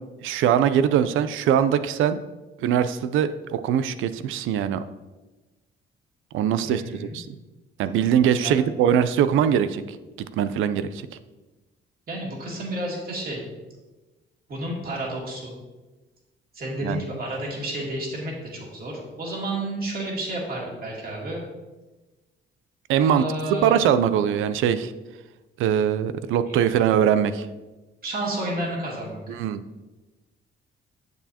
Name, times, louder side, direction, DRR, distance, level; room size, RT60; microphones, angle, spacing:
voice 1, 0.2-2.2 2.6-4.8 6.3-7.3 7.8-10.0 10.3-11.0 16.8-17.0 22.9-23.2 23.6-24.9 25.6-27.5 29.4-29.6, right 9 dB, 85° right, 12 dB, 0.5 m, -22 dB
voice 2, 6.6-7.2 8.4-8.5 12.1-13.4 14.5-15.5 16.5-21.4 23.0-23.9 26.5-26.6 28.0-29.4, right 1 dB, 50° right, -3 dB, 2.5 m, -31 dB
8.0 x 7.0 x 2.8 m, 1.2 s
cardioid pair, 90°, 20 cm